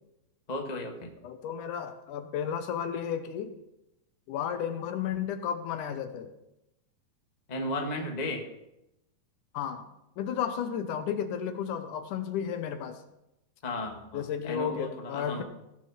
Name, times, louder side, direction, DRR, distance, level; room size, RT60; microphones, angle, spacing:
voice 1, 0.5-1.1 7.5-8.5 13.6-15.4, left 1 dB, 45° left, 1 dB, 0.5 m, -34 dB
voice 2, 1.2-3.5 4.3-6.3 9.5-9.9 10.2-13.0 14.1-15.4, left 8 dB, 75° left, 8 dB, 2.2 m, -33 dB
17.5 x 6.2 x 5.7 m, 0.87 s
omnidirectional pair, 4.0 m